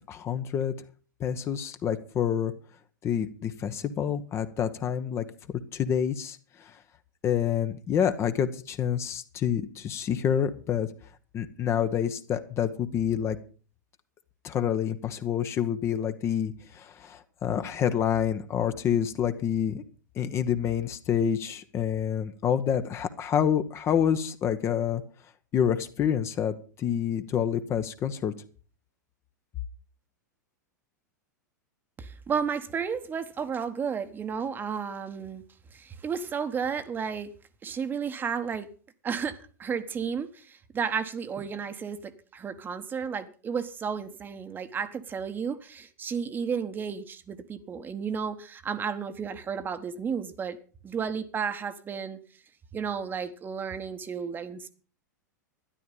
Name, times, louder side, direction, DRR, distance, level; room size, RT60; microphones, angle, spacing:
voice 1, 0.1-0.7 1.2-2.5 3.0-5.2 5.7-6.8 7.2-10.9 11.3-13.4 14.4-19.8 20.1-25.0 25.5-28.3, left 9 dB, 25° left, 10 dB, 1.1 m, -27 dB
voice 2, 32.0-35.4 35.7-37.3 37.6-38.7 39.0-50.6 50.8-52.2 52.7-54.7, right 6 dB, 20° right, 10 dB, 1.2 m, -33 dB
13.0 x 11.0 x 5.4 m, 0.38 s
figure-of-eight pair, 95°, 10 cm